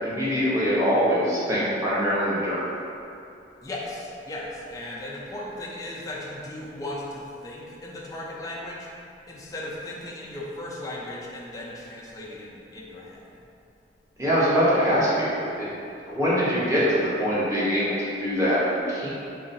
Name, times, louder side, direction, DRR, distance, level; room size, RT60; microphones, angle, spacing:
voice 1, 0.0-2.6 14.2-15.7 16.1-19.1, equal, 15° right, -9 dB, 0.7 m, -23 dB
voice 2, 3.6-8.9 9.3-13.2, left 1 dB, 20° left, -4 dB, 0.3 m, -36 dB
3.8 x 2.3 x 2.6 m, 2.6 s
head